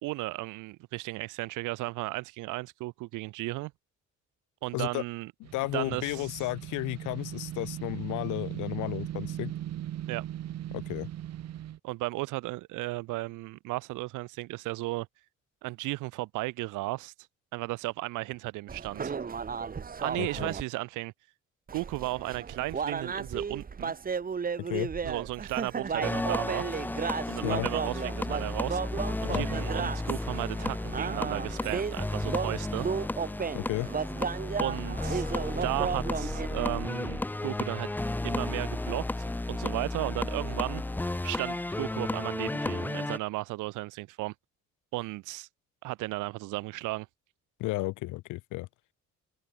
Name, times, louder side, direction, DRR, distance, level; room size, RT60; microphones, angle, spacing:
voice 1, 0.0-3.7 4.6-5.3 5.7-6.3 10.1-10.2 11.8-15.1 15.6-17.1 17.5-19.1 20.0-21.1 21.7-23.9 25.0-26.7 27.3-28.8 29.2-32.9 34.5-35.3 35.6-37.9 38.2-40.8 41.2-44.3 44.9-45.5 45.8-47.1, right 20 dB, 85° right, 0.5 m, -35 dB
sound 1, 5.4-11.8, right 12 dB, 60° right, 0.8 m, -38 dB
voice 2, 5.5-9.5 10.7-11.1 20.2-20.5 24.6-24.9 27.4-27.7 29.2-29.4 33.5-33.9 47.6-48.7, left 19 dB, 85° left, 0.5 m, -33 dB
sound 2, 18.7-20.6 21.7-36.5, right 6 dB, 30° right, 1.0 m, -34 dB
sound 3, 26.0-43.2, left 2 dB, 5° left, 0.4 m, -33 dB
open air
cardioid pair, 90°, 30 cm